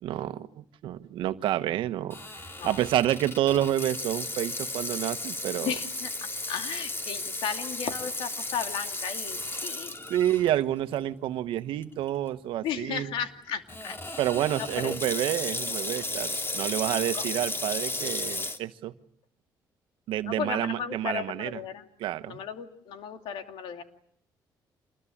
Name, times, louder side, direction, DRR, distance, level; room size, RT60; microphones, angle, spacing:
voice 1, 0.0-2.2 2.6-5.8 9.4-9.7 10.1-13.1 14.2-18.9 20.1-21.6 22.0-22.4, right 12 dB, 80° right, 11 dB, 1.3 m, -29 dB
Water tap faucet / Sink (filling or washing), 2.1-10.5 11.0-11.1 11.8-12.1 13.7-18.6, left 2 dB, 25° left, 2.9 m, -34 dB
voice 2, 5.6-6.1 6.5-9.4 9.6-9.9 12.6-14.0 14.8-14.9 17.1-17.2 20.2-21.8 22.3-23.8, left 7 dB, 85° left, 6 dB, 2.7 m, -34 dB
28.0 x 21.0 x 8.7 m, 0.68 s
cardioid pair, 75°, 9 cm